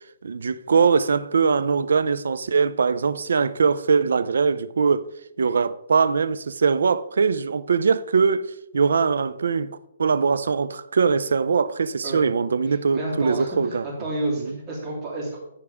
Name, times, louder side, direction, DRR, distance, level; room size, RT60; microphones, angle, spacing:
voice 1, 0.2-5.0 5.4-9.7 10.0-13.8 14.4-14.5, right 5 dB, 80° right, 0.5 m, -21 dB
voice 2, 12.7-15.4, right 2 dB, 25° right, 3.4 m, -30 dB
14.5 x 4.9 x 3.6 m
hypercardioid pair, 160°, 0 cm